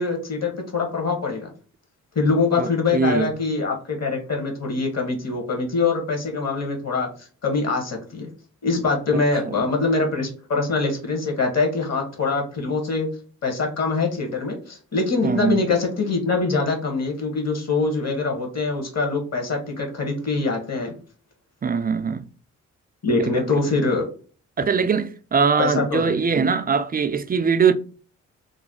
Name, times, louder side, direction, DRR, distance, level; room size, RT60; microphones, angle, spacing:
voice 1, 0.0-1.5 2.1-7.1 7.4-8.3 8.6-13.1 13.4-20.9 23.0-24.1 25.6-26.1, left 3 dB, 45° left, 1.5 m, -24 dB
voice 2, 2.6-3.3 9.5-9.6 15.2-15.6 21.6-22.2 23.2-23.4 24.6-27.7, right 5 dB, 25° right, 0.4 m, -21 dB
3.2 x 2.2 x 4.1 m
hypercardioid pair, 45°, 35 cm